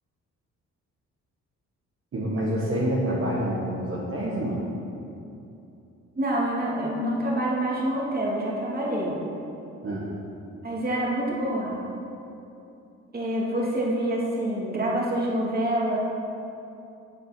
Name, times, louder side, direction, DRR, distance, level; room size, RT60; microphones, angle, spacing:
voice 1, 2.1-4.6 9.8-10.1, right 1 dB, 45° right, -6 dB, 1.8 m, -27 dB
voice 2, 6.2-9.2 10.6-11.8 13.1-16.1, right 1 dB, 30° right, -4 dB, 2.8 m, -26 dB
8.6 x 8.0 x 6.1 m, 2.8 s
cardioid pair, 90°, 30 cm